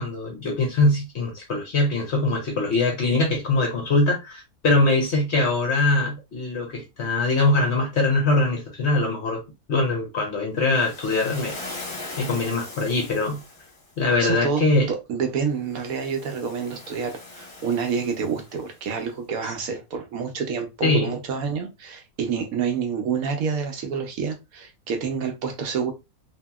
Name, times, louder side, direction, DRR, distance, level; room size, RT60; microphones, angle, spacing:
voice 1, 0.0-9.4 9.7-11.5 12.2-13.4 14.0-14.9 20.8-21.2, left 2 dB, 55° left, 0.8 m, -22 dB
Waves surf, 10.7-13.9 15.7-18.8, left 2 dB, 25° left, 0.9 m, -40 dB
voice 2, 14.2-25.9, right 6 dB, 70° right, 1.0 m, -28 dB
2.8 x 2.7 x 2.2 m
omnidirectional pair, 1.7 m